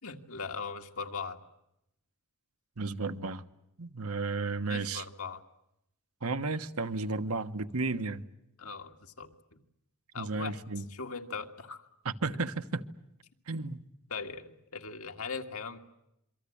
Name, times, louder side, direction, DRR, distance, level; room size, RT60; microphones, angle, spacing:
voice 1, 0.0-1.4 4.7-5.4 8.6-9.3 10.1-10.6 10.9-11.9 13.5-13.6 14.1-15.8, left 5 dB, 70° left, 2.0 m, -39 dB
voice 2, 2.8-3.4 3.8-5.0 6.2-8.2 10.1-10.8 12.0-12.8 13.5-13.8, right 3 dB, 75° right, 1.2 m, -33 dB
27.0 x 24.0 x 8.6 m
head